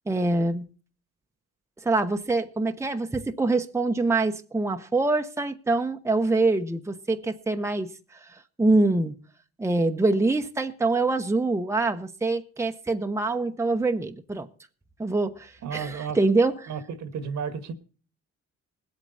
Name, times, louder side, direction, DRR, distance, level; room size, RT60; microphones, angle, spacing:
voice 1, 0.1-0.7 1.8-7.9 8.6-9.1 9.6-14.5 15.0-16.7, right 2 dB, 10° right, 0.9 m, -25 dB
voice 2, 15.6-16.2 16.7-17.7, right 6 dB, 65° right, 1.6 m, -32 dB
19.5 x 8.4 x 4.0 m
cardioid pair, 90°, 30 cm